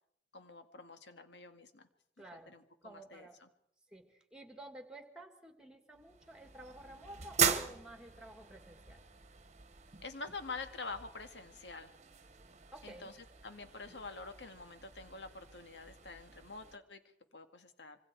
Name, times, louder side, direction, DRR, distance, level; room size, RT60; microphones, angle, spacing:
voice 1, 0.3-1.9 2.5-3.5 10.0-11.9 12.8-13.2 13.4-17.0 17.3-18.0, left 3 dB, 75° left, 7 dB, 2.1 m, -47 dB
voice 2, 2.2-2.5 2.8-3.4 3.9-9.0 12.7-13.1, right 1 dB, 5° right, 6 dB, 2.6 m, -52 dB
sound 1, 5.9-16.8, right 7 dB, 40° right, 1.4 m, -40 dB
26.0 x 24.5 x 4.7 m, 0.72 s
head